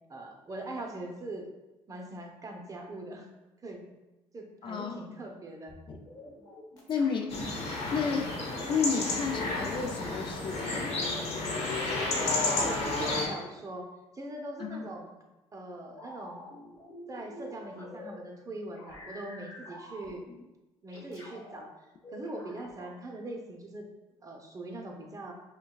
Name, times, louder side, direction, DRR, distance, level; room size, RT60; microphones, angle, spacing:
voice 1, 0.0-1.5 1.9-3.3 3.6-3.8 4.3-5.7 12.6-13.9 14.1-15.1 15.5-16.4 17.1-20.2 20.8-21.7 22.1-23.9 24.2-25.3, right 1 dB, 30° right, 2 dB, 0.7 m, -41 dB
voice 2, 4.6-5.2 5.9-6.0 6.9-7.4 7.9-8.4 8.7-11.0 14.6-14.8, left 6 dB, 50° left, 4 dB, 0.4 m, -32 dB
sound 1, 5.7-8.6 9.4-13.4 14.7-14.9 15.9-18.2 18.7-20.4 20.9-21.7 22.0-23.0, left 1 dB, 30° left, 1.4 m, -48 dB
sound 2, 7.3-13.3, left 2 dB, 65° left, 1.0 m, -31 dB
5.4 x 2.3 x 2.3 m, 1.0 s
supercardioid pair, 70°, 11 cm